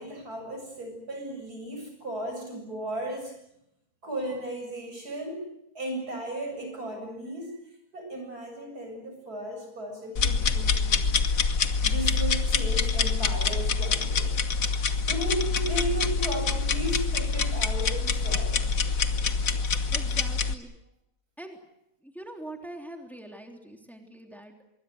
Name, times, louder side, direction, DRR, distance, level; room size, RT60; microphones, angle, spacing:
voice 1, 0.0-3.4 4.0-5.5 5.7-7.6 7.9-11.0 11.8-14.4 15.1-18.6, right 1 dB, 75° right, 4 dB, 8.1 m, -35 dB
sound 1, 10.2-20.5, left 5 dB, 60° left, 1.7 m, -26 dB
voice 2, 19.9-20.7 21.4-21.6 22.0-24.5, right 1 dB, ahead, 4 dB, 3.3 m, -43 dB
25.5 x 23.0 x 8.0 m, 0.78 s
omnidirectional pair, 1.6 m